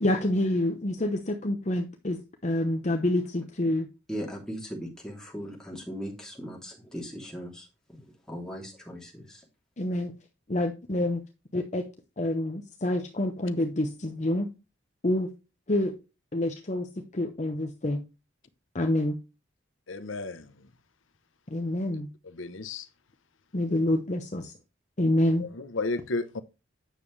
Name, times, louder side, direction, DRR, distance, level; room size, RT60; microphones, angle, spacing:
voice 1, 0.0-3.9 9.8-10.1 10.5-11.2 11.5-11.8 12.2-14.5 15.0-15.3 15.7-15.9 16.3-18.0 18.7-19.2 21.5-22.1 23.5-24.5 25.0-25.5, left 1 dB, 35° left, 0.8 m, -27 dB
voice 2, 4.1-9.4, equal, 5° left, 2.9 m, -39 dB
voice 3, 19.9-20.7 22.3-22.9 25.4-26.4, left 3 dB, 80° left, 0.8 m, -33 dB
9.2 x 6.9 x 3.2 m
head